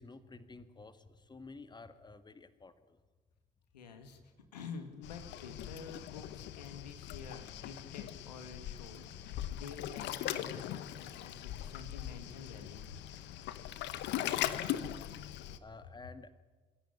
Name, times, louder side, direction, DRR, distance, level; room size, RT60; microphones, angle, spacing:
voice 1, 0.0-3.0 4.1-4.2 14.2-16.3, left 3 dB, 20° left, 11 dB, 1.8 m, -53 dB
voice 2, 3.7-4.2 4.5-13.0, left 5 dB, 80° left, 7 dB, 2.1 m, -49 dB
Waves surf, 5.0-15.6, left 12 dB, 60° left, 1.2 m, -40 dB
27.5 x 16.5 x 9.9 m, 1.3 s
figure-of-eight pair, 45°, 21 cm